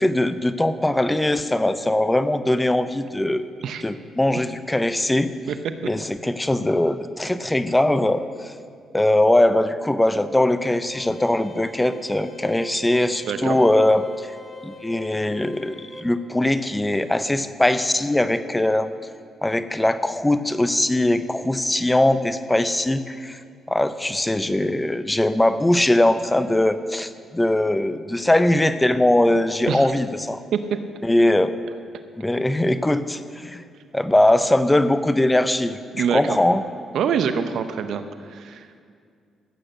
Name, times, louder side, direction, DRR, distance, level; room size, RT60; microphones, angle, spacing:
voice 1, 0.0-3.5 3.8-5.3 5.8-8.5 8.9-14.3 14.6-18.9 19.4-23.4 23.7-30.4 31.0-31.5 32.2-33.6 33.9-36.6, left 1 dB, 15° left, 12 dB, 0.8 m, -21 dB
sound 1, 10.9-16.0, right 1 dB, 40° left, 1.9 m, -43 dB
voice 2, 13.3-13.6 29.7-29.9 30.5-30.8 35.9-36.4 36.9-38.0 38.3-38.8, right 7 dB, 70° right, 10 dB, 0.7 m, -25 dB
14.5 x 8.7 x 6.5 m, 2.2 s
hypercardioid pair, 50°, 0 cm